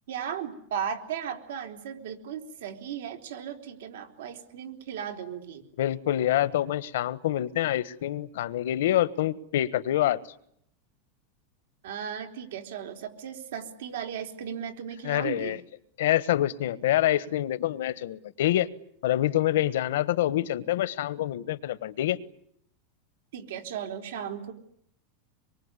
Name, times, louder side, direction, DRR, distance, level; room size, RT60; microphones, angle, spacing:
voice 1, 0.1-5.6 11.8-15.6 23.3-24.5, right 8 dB, 85° right, 5 dB, 3.9 m, -36 dB
voice 2, 5.8-10.2 15.0-15.6 16.0-18.7 19.0-22.2, left 13 dB, 85° left, 16 dB, 1.3 m, -26 dB
26.0 x 23.5 x 9.9 m, 0.72 s
supercardioid pair, 155°, 0 cm